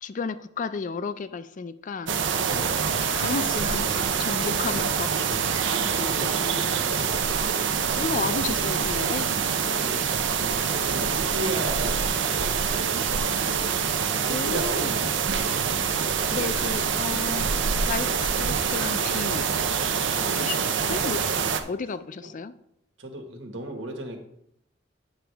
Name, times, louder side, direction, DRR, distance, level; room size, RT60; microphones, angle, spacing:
voice 1, 0.0-2.1 3.0-6.8 7.7-9.3 14.0-15.1 16.3-17.5 17.8-19.5 20.3-22.5, left 4 dB, 45° left, 13 dB, 0.4 m, -33 dB
sound 1, 2.1-21.6, right 6 dB, 75° right, 0.6 m, -25 dB
voice 2, 2.5-2.9 9.8-10.1 10.4-13.2 14.3-15.1 20.1-20.5 22.2-22.3 23.0-24.2, right 1 dB, 90° right, 3 dB, 1.6 m, -35 dB
8.8 x 6.1 x 3.4 m, 0.76 s
head